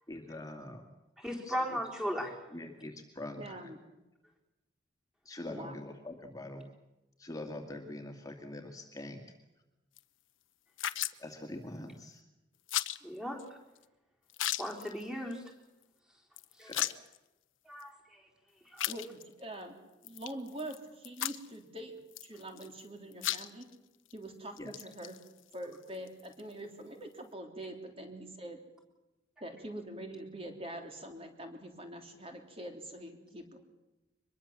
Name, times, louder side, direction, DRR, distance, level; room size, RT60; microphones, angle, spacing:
voice 1, 0.1-0.9 1.4-1.8 2.5-3.7 5.2-6.6 7.2-9.2 11.2-12.2 16.6-16.9 24.6-24.7, left 1 dB, 20° left, 3 dB, 2.2 m, -44 dB
voice 2, 1.2-2.3 13.0-13.4 14.6-15.4 16.6-16.7 17.7-18.2 18.7-18.9, equal, 5° right, 1 dB, 4.1 m, -36 dB
voice 3, 3.4-3.8 5.5-5.8 18.9-19.8 20.0-23.7 24.1-25.2 25.5-28.6 29.4-33.6, right 1 dB, 30° right, 4 dB, 3.3 m, -44 dB
sound 1, 10.0-10.1 10.8-11.2 12.7-13.0 13.4-13.5 13.8-13.9 14.3-15.0 15.3-15.5 15.8-15.9 16.4-17.2 17.8-17.9 18.8-19.4 20.0-20.8 21.0-21.6 22.1-22.9 23.1-23.7 24.1-24.2 24.6-26.5, left 13 dB, 90° left, 1.0 m, -36 dB
24.5 x 22.0 x 7.4 m, 1.0 s
head